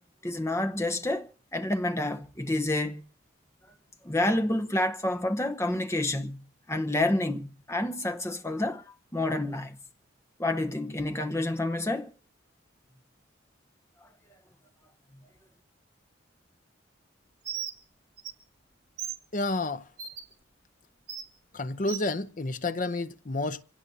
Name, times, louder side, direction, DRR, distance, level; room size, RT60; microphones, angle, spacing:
voice 1, 0.2-3.0 4.0-6.4 6.7-8.8 9.1-9.8 10.4-12.1, left 1 dB, 15° left, 1.0 m, -29 dB
Bird, 17.4-17.8 18.2-18.3 19.0-19.2 20.0-20.2 21.1-21.3 21.9-22.1, right 9 dB, 55° right, 2.1 m, -35 dB
voice 2, 19.3-19.9 21.5-23.6, left 2 dB, 40° left, 0.7 m, -30 dB
26.0 x 17.5 x 2.8 m
head